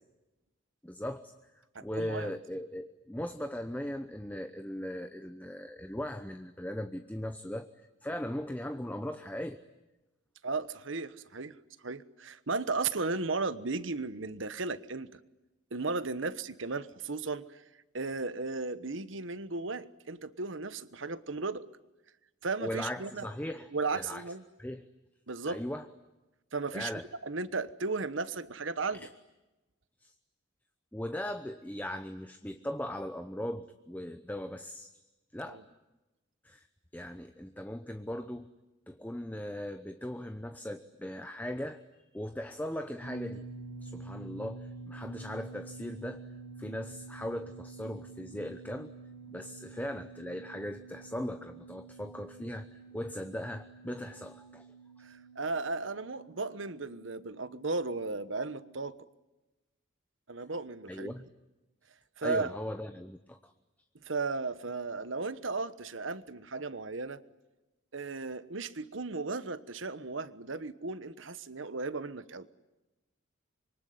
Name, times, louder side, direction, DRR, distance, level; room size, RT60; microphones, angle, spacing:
voice 1, 0.8-1.3 1.8-7.7 8.0-9.6 22.6-24.2 24.6-24.9 25.5-25.9 26.7-27.1 28.9-29.1 30.0-30.1 30.9-35.0 35.3-35.6 36.4-36.7 36.9-38.5 38.9-41.8 42.1-43.4 43.8-46.3 46.6-48.9 49.3-54.7 60.9-61.3 62.2-63.5, left 1 dB, 10° left, 8 dB, 0.9 m, -39 dB
voice 2, 1.7-2.3 10.4-11.5 11.8-15.1 15.7-17.6 17.9-21.6 22.4-23.3 23.7-24.4 25.3-25.6 26.5-26.9 27.2-29.1 35.5-35.6 55.0-58.9 60.3-61.1 62.2-62.5 64.0-67.2 67.9-72.5, right 3 dB, 75° right, 14 dB, 1.2 m, -35 dB
sound 1, 43.0-58.8, right 3 dB, 25° left, 5.6 m, -48 dB
26.0 x 24.0 x 9.4 m, 1.0 s
head